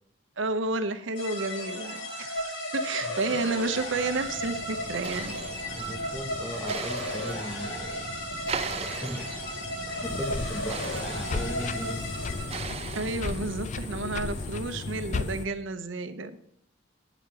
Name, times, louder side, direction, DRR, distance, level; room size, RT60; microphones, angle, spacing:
voice 1, 0.4-5.4 12.9-16.4, right 3 dB, 75° right, 10 dB, 0.8 m, -31 dB
sound 1, 1.1-12.8, left 1 dB, 70° left, 3.0 m, -35 dB
voice 2, 3.0-3.5 5.7-8.1 8.6-9.4 9.9-12.1, equal, 5° left, 7 dB, 0.7 m, -38 dB
sound 2, 3.3-14.8, right 5 dB, 30° right, 0.5 m, -39 dB
sound 3, 10.0-15.5, left 4 dB, 35° left, 0.4 m, -34 dB
9.1 x 5.0 x 6.9 m, 0.70 s
head